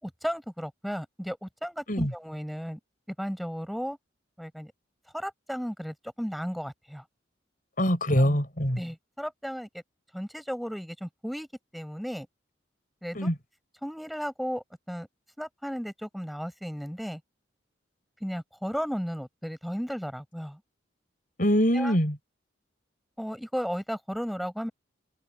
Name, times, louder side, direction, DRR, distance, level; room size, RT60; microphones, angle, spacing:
voice 1, 0.0-2.8 3.2-4.0 4.4-4.7 5.1-7.0 8.2-8.4 8.7-9.8 10.1-11.5 11.7-12.3 13.0-13.3 13.8-15.1 15.4-17.2 18.2-20.6 21.7-22.0 23.2-24.7, equal, ahead, 5.9 m, -34 dB
voice 2, 7.8-8.8 13.1-13.3 21.4-22.2, equal, 45° left, 6.2 m, -23 dB
head